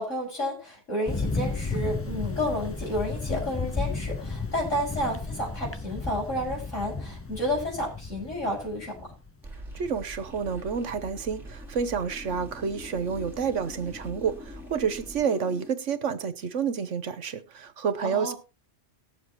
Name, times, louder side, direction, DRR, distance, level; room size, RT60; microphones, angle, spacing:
voice 1, 0.0-9.1 18.0-18.3, equal, 85° left, 6.3 m, -31 dB
Thunder, 1.1-9.3, left 3 dB, 15° left, 0.4 m, -33 dB
sound 1, 9.4-15.7, equal, ahead, 2.6 m, -42 dB
voice 2, 9.7-18.3, right 6 dB, 80° right, 1.4 m, -29 dB
19.0 x 7.3 x 3.0 m
omnidirectional pair, 1.3 m